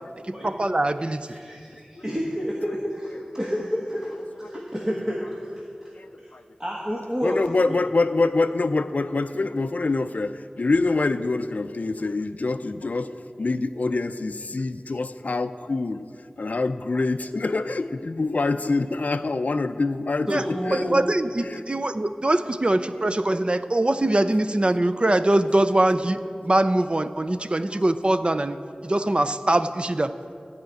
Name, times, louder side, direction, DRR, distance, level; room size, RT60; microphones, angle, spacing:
voice 1, 0.4-1.3 20.3-20.5 20.7-28.6 28.8-30.1, right 1 dB, 40° right, 11 dB, 0.5 m, -22 dB
voice 2, 1.3-5.9 6.2-6.3 6.6-7.8 20.3-21.0, equal, 25° right, -3 dB, 1.4 m, -30 dB
voice 3, 6.0-6.4 7.2-16.0 16.4-20.9 21.5-21.6 27.4-27.5 27.7-27.8, left 3 dB, 65° left, 10 dB, 0.3 m, -25 dB
14.0 x 5.0 x 9.3 m, 2.4 s
wide cardioid pair, 55°, 3 cm